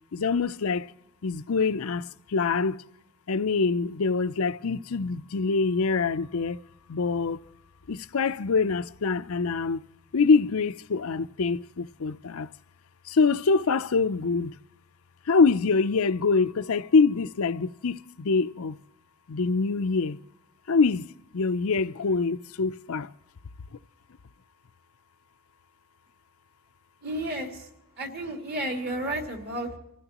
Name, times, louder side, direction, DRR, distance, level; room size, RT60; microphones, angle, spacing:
voice 1, 0.1-0.9 1.2-2.8 3.3-6.6 6.9-7.4 7.9-9.8 10.1-12.5 13.1-14.5 15.3-18.7 19.3-20.2 20.7-21.1 21.3-23.1, left 4 dB, 70° left, 0.6 m, -25 dB
voice 2, 27.0-27.5 28.0-29.8, right 1 dB, 45° right, 2.9 m, -32 dB
27.0 x 15.5 x 3.0 m
head